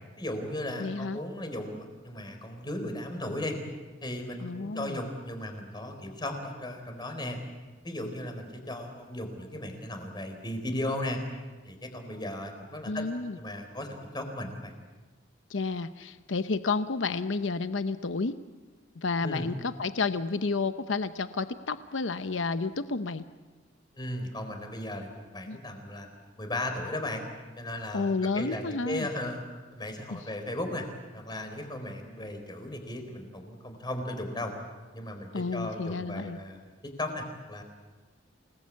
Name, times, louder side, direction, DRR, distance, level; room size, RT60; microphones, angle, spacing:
voice 1, 0.2-3.6 4.0-7.4 7.8-11.2 11.6-13.1 13.4-14.7 19.2-19.5 23.9-26.1 26.4-27.2 27.6-29.4 29.7-30.9 31.1-34.5 34.9-37.6, left 1 dB, 25° left, 5 dB, 4.1 m, -36 dB
voice 2, 0.8-1.2 4.4-5.0 12.9-13.4 15.5-18.4 19.0-23.2 25.5-25.6 27.9-29.1 30.1-30.2 35.3-36.4, left 4 dB, 90° left, 11 dB, 0.8 m, -31 dB
28.5 x 19.5 x 8.5 m, 1.3 s
head